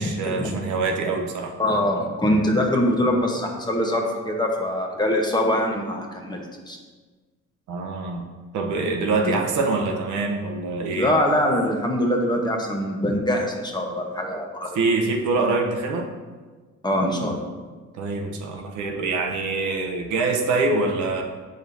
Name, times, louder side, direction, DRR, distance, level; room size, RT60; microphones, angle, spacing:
voice 1, 0.0-1.5 7.7-8.3 8.5-11.1 14.7-16.1 17.9-21.2, right 3 dB, 80° right, 2 dB, 0.9 m, -24 dB
voice 2, 1.6-6.8 9.2-9.3 10.9-14.8 16.8-17.5, left 1 dB, 15° left, 1 dB, 1.0 m, -23 dB
7.4 x 5.2 x 2.7 m, 1.4 s
cardioid pair, 90°, 30 cm